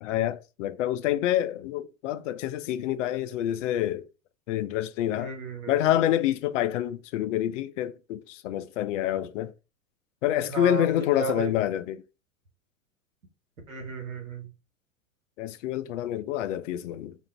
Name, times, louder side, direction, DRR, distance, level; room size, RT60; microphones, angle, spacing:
voice 1, 0.0-4.0 4.5-5.3 5.7-9.5 10.2-12.0 15.4-17.2, left 12 dB, 65° left, 0.5 m, -27 dB
voice 2, 5.1-5.8 10.5-11.5 13.7-14.5, right 3 dB, 90° right, 1.1 m, -34 dB
2.5 x 2.4 x 3.2 m
hypercardioid pair, 95°, 40 cm